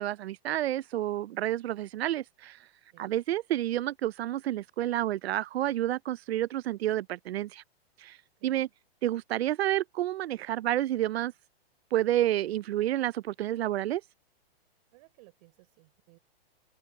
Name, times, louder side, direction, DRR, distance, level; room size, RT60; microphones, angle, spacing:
voice 1, 0.0-2.6 3.0-7.6 8.0-8.2 8.4-8.7 9.0-11.3 11.9-14.0, right 13 dB, 80° right, 0.5 m, -29 dB
voice 2, 8.4-8.7 14.9-16.2, right 24 dB, 40° right, 4.2 m, -59 dB
hypercardioid pair, 160°, 31 cm